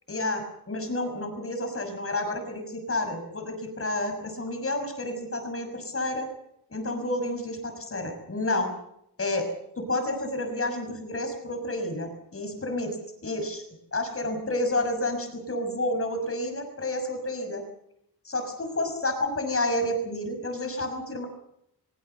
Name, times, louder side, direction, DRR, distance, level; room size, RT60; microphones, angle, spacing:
voice 1, 0.1-6.3 6.7-8.7 9.2-9.5 9.8-13.0 13.2-13.6 13.9-17.6 18.2-21.3, left 1 dB, 35° left, 6 dB, 6.1 m, -30 dB
23.5 x 22.0 x 6.9 m, 0.77 s
wide cardioid pair, 165°, 41 cm